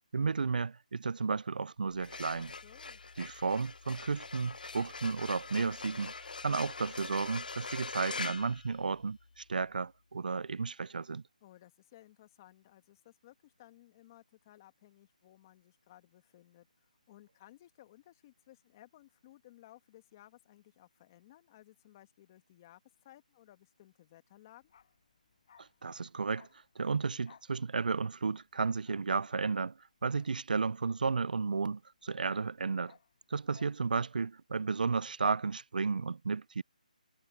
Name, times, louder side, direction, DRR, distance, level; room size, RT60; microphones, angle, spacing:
voice 1, 0.1-2.5 3.2-6.1 6.4-11.2 25.6-26.5 26.8-29.8 30.0-33.0 33.3-36.6, right 4 dB, 75° right, 0.4 m, -33 dB
sound 1, 1.9-9.3, left 4 dB, 80° left, 0.7 m, -43 dB
voice 2, 2.3-3.0 11.4-24.7 33.4-33.6, left 14 dB, 25° left, 1.8 m, -59 dB
Bark, 24.6-31.6 31.9-33.8 34.1-34.3, left 8 dB, 40° left, 7.5 m, -63 dB
hypercardioid pair, 165°, 5 cm